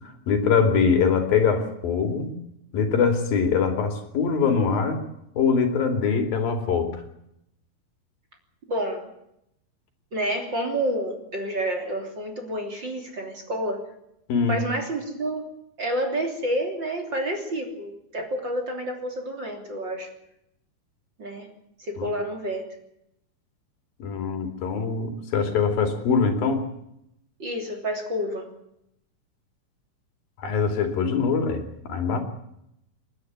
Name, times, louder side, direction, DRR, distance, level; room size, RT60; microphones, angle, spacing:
voice 1, 0.3-2.3 2.7-5.0 5.4-7.0 14.3-14.6 22.0-22.1 24.0-26.7 30.4-32.2, left 5 dB, 70° left, 6 dB, 4.4 m, -23 dB
voice 2, 8.7-9.1 10.1-13.9 14.5-15.5 15.8-20.1 21.2-21.5 21.8-22.7 27.4-28.5, right 1 dB, 30° right, 3 dB, 3.4 m, -29 dB
28.5 x 11.5 x 9.5 m, 0.80 s
omnidirectional pair, 4.4 m